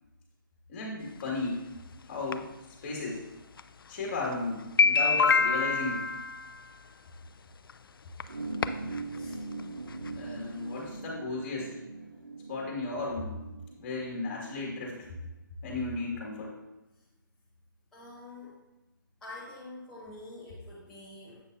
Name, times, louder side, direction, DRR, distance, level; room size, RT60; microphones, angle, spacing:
voice 1, 0.7-1.6 2.1-2.5 2.8-3.2 3.9-6.0 10.1-11.7 12.5-13.4 13.8-15.0 15.6-16.6, left 3 dB, 30° left, -2 dB, 2.2 m, -34 dB
sound 1, 1.2-1.3 2.3-2.4 3.6-3.7 4.2-4.3 4.6-6.6 7.7-7.8 8.2-8.3 8.6-9.0 9.3-9.4 9.6-9.7 10.1-10.2, left 5 dB, 85° left, 0.4 m, -25 dB
sound 2, 8.3-15.3, right 3 dB, 85° right, 1.4 m, -41 dB
voice 2, 17.9-18.6 19.2-21.4, left 2 dB, 5° left, -10 dB, 0.8 m, -46 dB
7.9 x 6.9 x 2.7 m, 0.98 s
hypercardioid pair, 155°, 12 cm